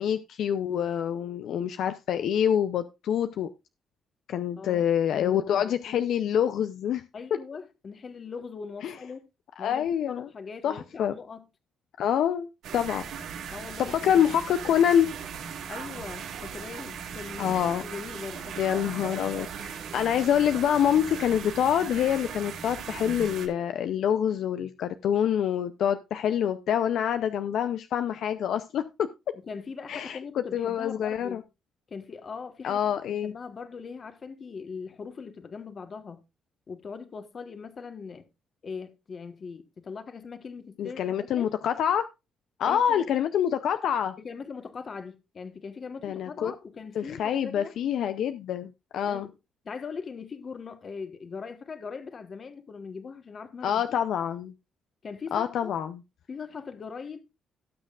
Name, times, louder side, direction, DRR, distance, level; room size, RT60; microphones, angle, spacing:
voice 1, 0.0-3.5 4.3-7.0 8.8-8.9 9.6-10.3 10.6-11.1 12.0-13.0 13.8-15.1 17.4-17.8 18.6-29.1 29.9-31.4 32.6-33.3 40.8-42.1 42.6-44.1 46.0-46.5 47.0-49.3 53.6-54.5 55.3-56.0, left 9 dB, 75° left, 0.6 m, -26 dB
voice 2, 5.1-6.0 7.1-9.2 9.6-11.5 13.5-14.2 15.7-18.6 29.4-31.4 31.9-36.2 36.7-38.3 38.6-41.5 42.6-43.1 44.2-47.7 49.0-49.4 49.6-53.9 55.0-55.8 56.3-57.2, left 5 dB, 45° left, 1.3 m, -40 dB
sound 1, 12.6-23.5, right 7 dB, 85° right, 2.2 m, -38 dB
17.5 x 6.5 x 2.4 m
cardioid pair, 90°, 0 cm